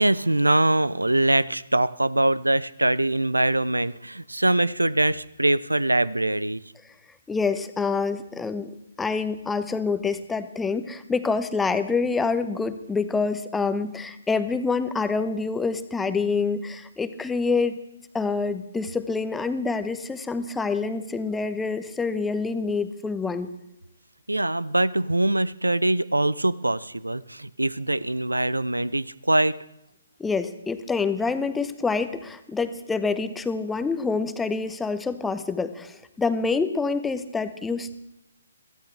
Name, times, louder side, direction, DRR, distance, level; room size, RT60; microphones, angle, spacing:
voice 1, 0.0-6.6 24.3-29.6, right 1 dB, 90° right, 20 dB, 0.5 m, -23 dB
voice 2, 7.3-8.7 9.0-17.8 18.1-23.5 30.2-37.9, left 4 dB, 5° left, 11 dB, 0.8 m, -26 dB
22.5 x 15.0 x 3.3 m, 0.87 s
figure-of-eight pair, 135°, 0 cm